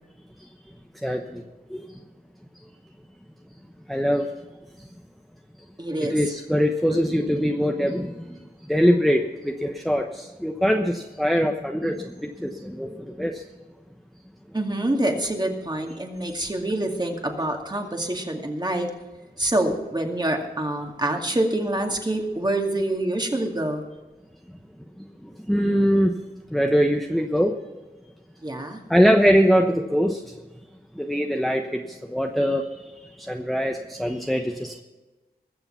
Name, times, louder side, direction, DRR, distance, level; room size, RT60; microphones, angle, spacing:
voice 1, 1.0-1.4 1.7-1.8 3.9-4.3 6.0-8.3 8.7-13.4 25.5-26.2 26.5-27.6 28.9-30.2 31.0-31.8 32.1-32.7 33.3-34.8, equal, ahead, 3 dB, 1.0 m, -22 dB
voice 2, 5.8-6.3 14.5-18.9 19.4-23.9 28.4-28.8, right 1 dB, 25° right, 2 dB, 2.3 m, -26 dB
20.5 x 7.0 x 5.7 m, 1.2 s
wide cardioid pair, 55°, 17 cm